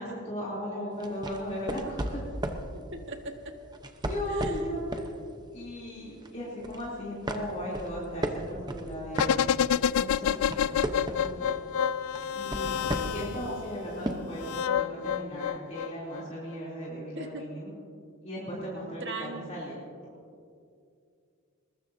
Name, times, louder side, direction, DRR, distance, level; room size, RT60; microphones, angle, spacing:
voice 1, 0.0-2.2 4.0-5.0 5.5-9.4 9.7-11.6 12.3-12.8 13.0-14.4 14.7-17.7 18.2-19.8, equal, 30° left, -7 dB, 3.3 m, -37 dB
sound 1, 1.0-2.7 3.7-5.1 5.6-5.8 6.2-6.9 7.3-9.9 10.2-11.4 12.2-13.3 14.0-14.1, right 1 dB, 20° right, 0.9 m, -34 dB
voice 2, 2.9-3.6 4.3-4.6 17.1-17.4 19.0-19.4, right 2 dB, 55° right, 3 dB, 1.7 m, -38 dB
sound 2, 9.1-13.6 14.4-16.2 16.5-16.6, left 8 dB, 70° left, 0.3 m, -28 dB
21.5 x 20.5 x 2.8 m, 2.3 s
head